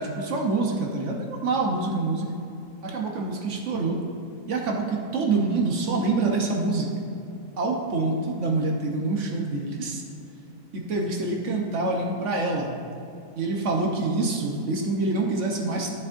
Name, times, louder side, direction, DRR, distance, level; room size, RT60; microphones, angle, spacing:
voice 1, 0.0-2.3 2.8-4.0 4.5-6.9 7.6-10.0 10.7-12.7 13.3-15.9, right 3 dB, 50° right, 0 dB, 1.0 m, -26 dB
12.5 x 7.2 x 2.6 m, 2.5 s
omnidirectional pair, 1.9 m